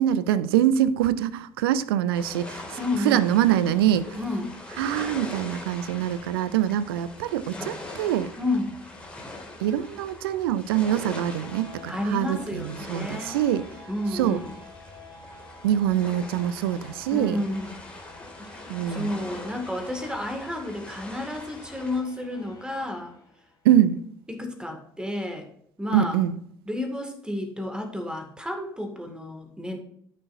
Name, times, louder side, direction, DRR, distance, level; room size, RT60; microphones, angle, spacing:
voice 1, 0.0-2.8 3.0-4.2 4.8-8.3 9.6-13.7 14.1-14.4 15.6-17.4 18.7-19.1 23.6-24.0 25.9-26.4, right 11 dB, 70° right, 0.5 m, -24 dB
sound 1, 2.1-22.0, left 2 dB, 10° left, 2.4 m, -42 dB
voice 2, 2.8-3.3 4.2-4.6 8.4-8.7 11.9-13.4 13.9-14.5 17.1-17.8 18.5-23.1 24.3-25.5 25.8-26.2 26.7-29.8, left 1 dB, 5° right, 2.1 m, -31 dB
sound 2, 10.7-23.7, left 3 dB, 30° left, 2.5 m, -50 dB
13.5 x 6.3 x 2.7 m
figure-of-eight pair, 60°, 13 cm